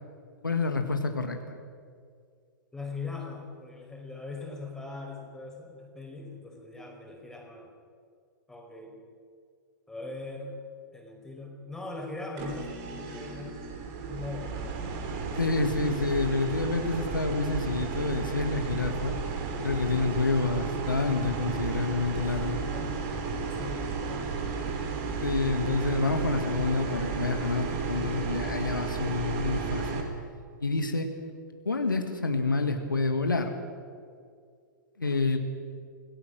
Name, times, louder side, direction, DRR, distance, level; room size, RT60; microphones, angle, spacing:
voice 1, 0.4-1.4 15.4-19.2 19.6-22.6 25.2-30.1 30.6-31.1 31.7-33.6 35.0-35.4, left 3 dB, 80° left, 5 dB, 1.9 m, -28 dB
voice 2, 2.7-7.7 8.5-9.0 9.9-10.6 10.9-13.6 14.0-14.7 22.2-22.4 22.7-23.1 23.5-24.3, left 3 dB, 5° left, 0 dB, 4.6 m, -41 dB
sound 1, 12.4-30.0, right 5 dB, 40° right, 3.4 m, -33 dB
26.0 x 17.5 x 6.3 m, 2.2 s
figure-of-eight pair, 105°, 11 cm